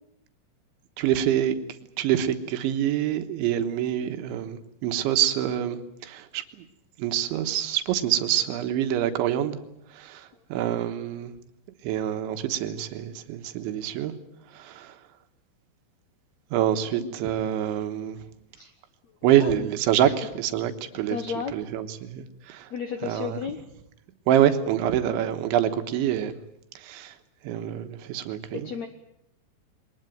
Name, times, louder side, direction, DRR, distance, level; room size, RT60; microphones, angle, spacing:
voice 1, 1.0-1.7 2.0-6.4 7.0-9.6 10.0-11.3 11.8-14.1 14.6-14.9 16.5-18.2 19.2-21.2 21.5-22.7 23.0-23.4 24.3-26.3 26.8-27.1 27.5-28.7, right 11 dB, 85° right, 8 dB, 3.6 m, -26 dB
voice 2, 17.0-17.4 18.5-18.7 19.3-19.7 20.0-20.2 21.1-21.6 22.7-23.6 28.5-28.9, left 7 dB, 80° left, 7 dB, 1.5 m, -34 dB
22.5 x 20.0 x 9.1 m, 0.79 s
omnidirectional pair, 5.2 m